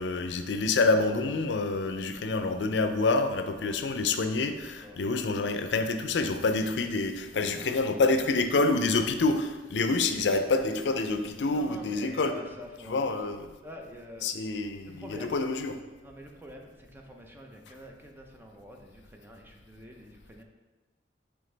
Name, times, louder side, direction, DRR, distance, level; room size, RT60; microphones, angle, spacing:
voice 1, 0.0-12.3 12.9-13.5 14.2-15.8, left 3 dB, 75° left, 8 dB, 0.5 m, -27 dB
voice 2, 4.6-5.0 7.4-7.8 9.0-9.1 11.5-13.2 13.6-14.3 14.8-15.4 16.0-20.4, left 1 dB, 10° right, 1 dB, 0.6 m, -47 dB
8.9 x 3.5 x 3.3 m, 1.2 s
head